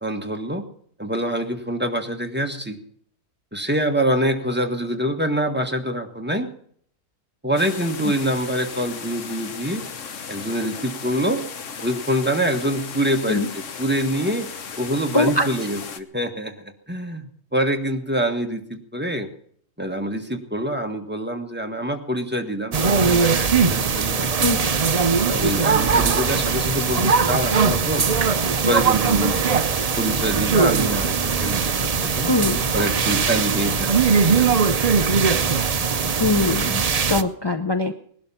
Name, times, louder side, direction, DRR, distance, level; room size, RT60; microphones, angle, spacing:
voice 1, 0.0-0.6 1.0-2.8 3.5-6.5 7.4-9.8 10.3-11.4 11.8-14.5 14.8-19.3 19.8-24.7 25.3-28.1 28.6-29.5 30.0-32.3 32.7-34.8, equal, 5° right, 4 dB, 1.3 m, -25 dB
sound 1, 7.6-16.0, left 6 dB, 55° left, 1.3 m, -36 dB
voice 2, 15.1-15.5 24.4-24.6 32.3-32.6 36.2-36.8 37.1-37.9, left 2 dB, 30° left, 7 dB, 0.4 m, -21 dB
sound 2, 22.7-37.2, right 5 dB, 50° right, 0.4 m, -20 dB
19.5 x 12.0 x 5.7 m, 0.63 s
omnidirectional pair, 1.6 m